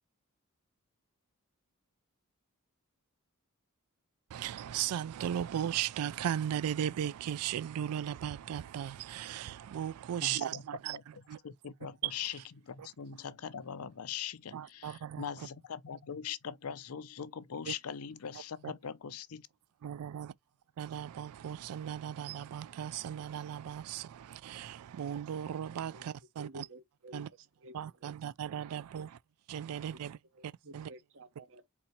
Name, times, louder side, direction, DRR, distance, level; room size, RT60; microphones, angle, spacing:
voice 1, 4.3-11.4 12.0-12.1 12.8-12.9 14.5-15.5 17.7-17.8 18.6-18.7 19.8-20.3 20.8-26.7 27.1-27.3 27.7-29.2 29.5-30.2 30.4-30.9, right 10 dB, 85° right, 0.3 m, -37 dB
voice 2, 10.2-10.6 10.9-19.5, left 7 dB, 85° left, 0.6 m, -42 dB
voice 3, 26.4-28.2 28.7-29.0 30.3-31.7, right 1 dB, 60° right, 0.9 m, -52 dB
4.4 x 4.2 x 2.7 m
head